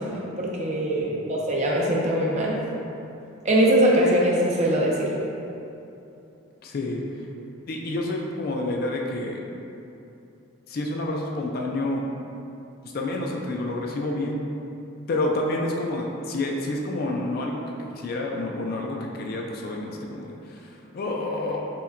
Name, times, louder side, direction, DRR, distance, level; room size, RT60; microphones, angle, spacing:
voice 1, 0.0-2.6 3.4-5.1, right 1 dB, 35° right, -3 dB, 0.4 m, -22 dB
voice 2, 6.6-7.2 7.7-9.4 10.7-12.0 12.9-14.5 15.1-17.6 17.9-21.7, left 2 dB, 45° left, 0 dB, 0.3 m, -29 dB
5.5 x 2.1 x 2.4 m, 2.8 s
head